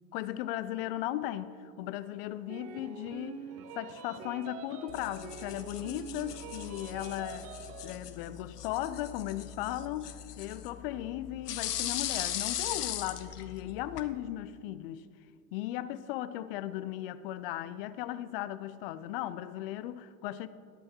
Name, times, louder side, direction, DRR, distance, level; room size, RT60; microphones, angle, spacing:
voice 1, 0.1-3.4 3.7-7.5 7.8-15.0 15.5-20.5, left 13 dB, 40° left, 0.4 m, -37 dB
sound 1, 2.5-8.0, right 6 dB, 30° right, 0.7 m, -45 dB
sound 2, 4.9-14.1, left 11 dB, 70° left, 0.9 m, -39 dB
19.5 x 8.4 x 2.9 m
figure-of-eight pair, 90°, 48 cm